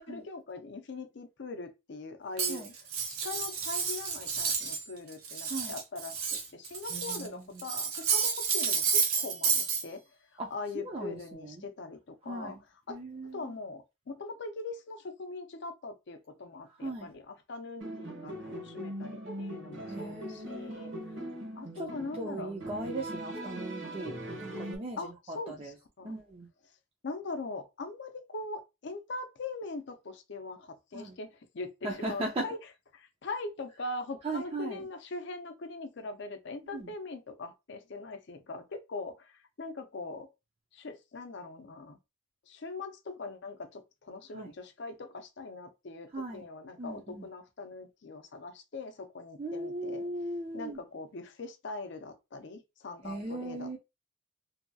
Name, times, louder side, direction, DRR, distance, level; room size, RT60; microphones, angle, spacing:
voice 1, 0.0-2.6 3.1-10.0 10.3-12.6 12.9-13.0 13.3-20.9 21.6-22.5 25.0-26.2 27.0-32.6 32.9-40.3 40.7-42.0 42.5-50.1 50.5-53.8, left 3 dB, 55° left, 0.5 m, -41 dB
Cutlery silverware, 2.4-4.8 5.1-7.3 7.6-9.8, right 6 dB, 90° right, 0.7 m, -30 dB
voice 2, 6.9-7.6 10.4-10.5 10.8-11.6 12.3-12.6 12.9-13.5 16.8-17.1 19.9-21.2 21.8-25.7 26.0-26.5 30.9-31.2 31.8-32.4 34.2-34.8 36.7-36.9 44.3-44.5 46.1-46.4 46.8-47.2 49.4-50.8 53.0-53.8, right 2 dB, 30° right, 0.4 m, -38 dB
sound 1, 17.8-24.8, right 1 dB, 60° right, 0.8 m, -40 dB
2.7 x 2.3 x 2.6 m
head